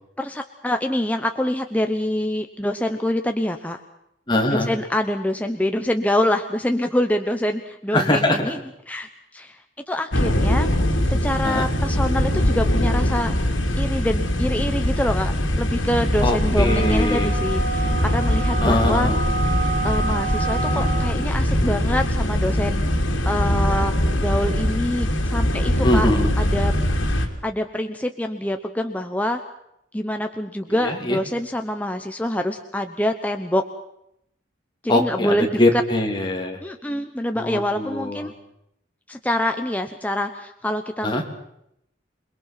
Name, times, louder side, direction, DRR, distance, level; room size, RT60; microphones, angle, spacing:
voice 1, 0.2-3.8 4.5-8.6 8.9-9.6 9.9-10.7 11.1-13.3 13.8-19.1 19.6-22.8 23.2-26.1 26.4-26.7 27.1-29.4 29.9-33.6 34.8-35.6 36.6-38.3 39.1-41.2, left 1 dB, 10° left, 5 dB, 1.0 m, -25 dB
voice 2, 4.3-4.7 7.9-8.4 11.4-11.7 16.2-17.3 18.6-19.2 25.8-26.3 30.8-31.2 34.9-36.6 37.3-38.3 41.0-41.2, left 1 dB, 25° left, 2 dB, 3.1 m, -22 dB
sound 1, 10.1-27.3, equal, 80° left, 3.2 m, -22 dB
sound 2, 16.6-21.3, right 3 dB, 55° right, 7.9 m, -29 dB
28.0 x 21.5 x 5.8 m, 0.77 s
head